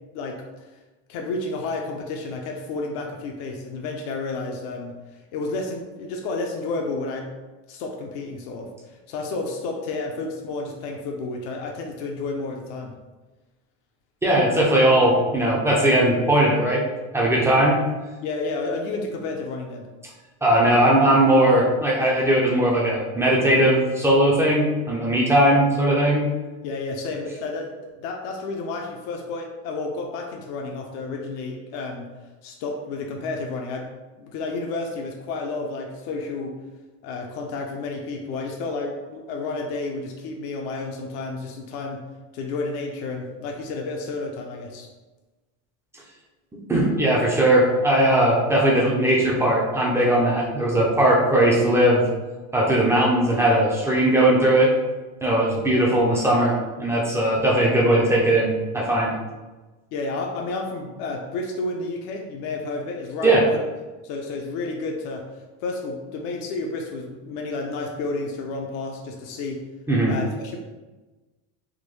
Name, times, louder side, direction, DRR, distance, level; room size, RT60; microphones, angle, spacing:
voice 1, 1.1-4.9 5.3-7.3 7.7-12.9 18.2-19.9 26.6-27.7 28.0-32.1 32.4-33.9 34.2-36.5 37.0-42.0 42.3-44.9 59.9-63.4 64.0-69.6 70.1-70.6, left 3 dB, 75° left, 1 dB, 0.6 m, -31 dB
voice 2, 14.2-16.8 17.1-17.8 20.4-26.3 46.7-52.0 52.5-54.7 55.2-56.5 56.8-59.1 63.2-63.4 69.9-70.1, right 1 dB, 5° right, -4 dB, 0.3 m, -19 dB
3.6 x 2.2 x 3.1 m, 1.2 s
cardioid pair, 145°, 40 cm